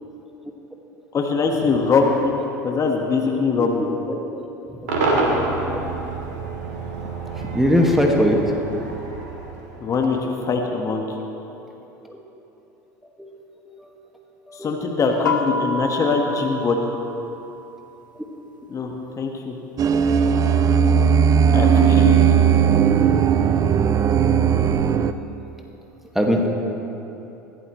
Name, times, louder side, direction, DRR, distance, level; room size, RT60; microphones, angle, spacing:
voice 1, 1.1-2.4 2.6-3.8 9.8-11.2 14.5-16.8 18.7-19.6 21.5-22.2, left 4 dB, 30° left, 1 dB, 1.8 m, -22 dB
voice 2, 3.3-4.2 4.7-5.4 7.3-8.4 8.7-8.9 12.0-12.2 13.2-13.4 13.7-13.9 14.5-14.8 18.2-18.3 20.3-20.5 26.1-26.5, equal, 5° right, 0 dB, 2.1 m, -23 dB
Cheering / Crowd / Fireworks, 4.9-10.2, right 3 dB, 65° right, 3.0 m, -27 dB
sound 1, 15.3-18.0, left 2 dB, 80° left, 0.5 m, -29 dB
Dark Water, 19.8-25.1, right 7 dB, 35° right, 0.6 m, -17 dB
21.5 x 16.5 x 3.3 m, 3.0 s
figure-of-eight pair, 75°, 10 cm